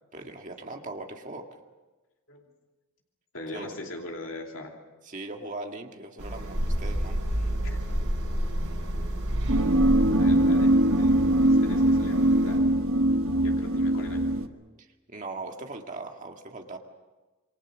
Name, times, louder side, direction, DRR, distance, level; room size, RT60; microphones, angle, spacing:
voice 1, 0.1-1.5 3.5-3.8 5.0-7.2 14.8-16.8, right 2 dB, 35° right, 3 dB, 2.0 m, -39 dB
voice 2, 3.3-4.7 7.3-8.1 10.1-11.1 11.4-12.6 13.4-14.4, left 2 dB, 60° left, 1 dB, 2.7 m, -41 dB
sound 1, 6.2-12.6, equal, 90° right, 7.3 m, -30 dB
sound 2, 9.5-14.5, right 1 dB, 65° right, 1.3 m, -22 dB
27.0 x 23.5 x 6.3 m, 1.2 s
head